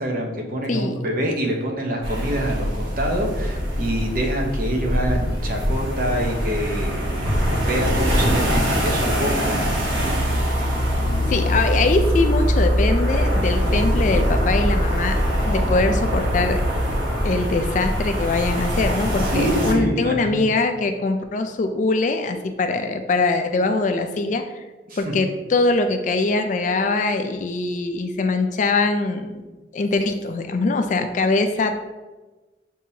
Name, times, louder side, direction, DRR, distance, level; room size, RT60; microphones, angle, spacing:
voice 1, 0.0-7.4 7.7-10.1 19.2-20.5 24.9-25.2, equal, 45° right, 1 dB, 0.7 m, -26 dB
sound 1, 2.0-19.7, equal, 80° right, 1.2 m, -22 dB
voice 2, 11.3-15.2 15.4-16.6 17.2-24.4 25.0-29.4 29.7-31.8, left 3 dB, 40° left, 7 dB, 0.3 m, -22 dB
6.7 x 2.7 x 2.7 m, 1.2 s
head